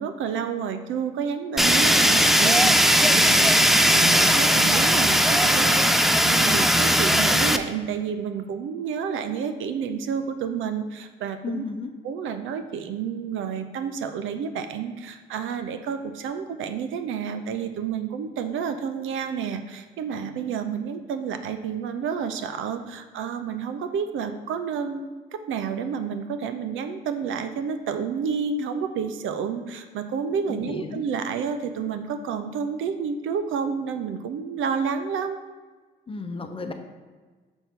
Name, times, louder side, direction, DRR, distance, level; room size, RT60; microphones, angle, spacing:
voice 1, 0.0-11.6 12.0-35.4, right 6 dB, 80° right, 9 dB, 0.6 m, -30 dB
Fire, 1.6-7.6, equal, ahead, 0.4 m, -18 dB
voice 2, 11.4-11.9 30.5-31.0 36.1-36.7, left 3 dB, 25° left, 6 dB, 0.7 m, -33 dB
6.2 x 5.7 x 3.6 m, 1.4 s
cardioid pair, 90°, 20 cm